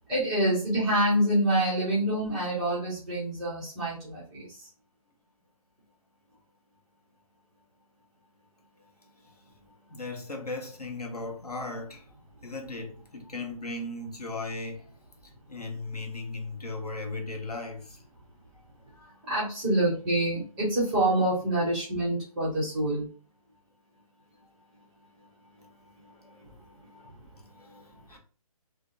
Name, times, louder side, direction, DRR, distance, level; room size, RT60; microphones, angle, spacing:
voice 1, 0.1-4.5 19.3-23.1, right 1 dB, 5° right, 0.3 m, -26 dB
voice 2, 9.9-12.1 12.4-14.9 15.2-18.0 18.5-18.7 19.0-19.1 27.5-28.2, left 2 dB, 90° left, 0.9 m, -37 dB
2.6 x 2.1 x 2.5 m
figure-of-eight pair, 145°, 19 cm